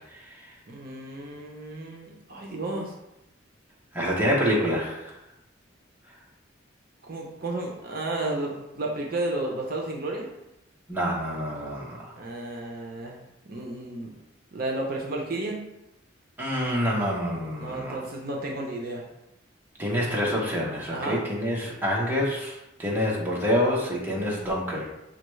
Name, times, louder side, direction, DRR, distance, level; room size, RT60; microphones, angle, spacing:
voice 1, 0.7-2.9 7.1-10.3 12.1-13.2 13.5-14.1 14.5-15.7 17.6-19.0 20.9-21.2, right 2 dB, 50° right, -1 dB, 0.6 m, -32 dB
voice 2, 3.9-5.1 10.9-12.1 16.4-18.0 19.8-24.9, equal, 10° right, -4 dB, 0.8 m, -27 dB
5.7 x 2.2 x 3.1 m, 0.90 s
head